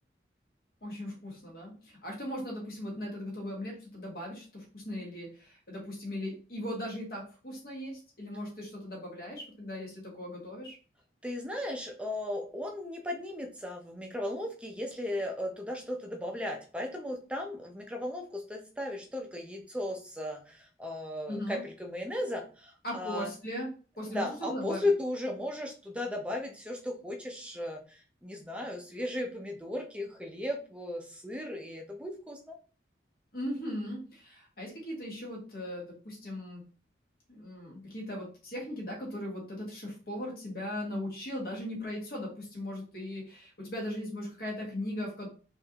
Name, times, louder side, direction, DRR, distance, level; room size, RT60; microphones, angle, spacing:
voice 1, 0.8-10.7 21.3-21.6 22.8-23.7 24.0-24.9 33.3-36.6 37.3-45.3, left 1 dB, 55° left, -2 dB, 1.5 m, -38 dB
voice 2, 11.2-23.3 24.1-32.6, left 1 dB, 5° right, 2 dB, 0.6 m, -36 dB
4.3 x 2.6 x 2.9 m, 0.37 s
head